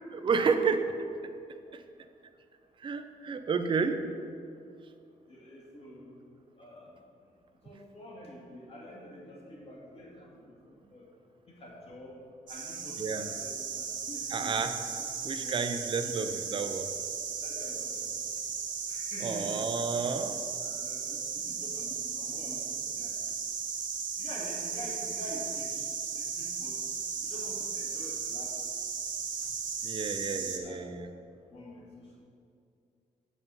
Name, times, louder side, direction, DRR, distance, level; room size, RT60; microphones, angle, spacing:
voice 1, 0.1-0.9 1.7-1.8 2.8-4.0 13.0-13.3 14.3-14.8 15.2-16.9 19.2-20.4 29.8-31.1, right 5 dB, 35° right, 8 dB, 0.6 m, -31 dB
voice 2, 5.3-6.2 6.6-7.0 7.6-11.1 11.5-12.2 12.5-14.7 15.0-15.1 15.4-15.6 16.0-16.2 17.4-18.2 18.9-19.6 20.6-23.2 24.2-26.8 27.2-28.6 30.4-30.8 31.5-32.2, left 1 dB, 40° left, -3 dB, 2.2 m, -47 dB
sound 1, 12.5-30.6, right 6 dB, 60° right, 1.0 m, -36 dB
8.0 x 7.1 x 5.5 m, 2.4 s
cardioid pair, 125°, 15 cm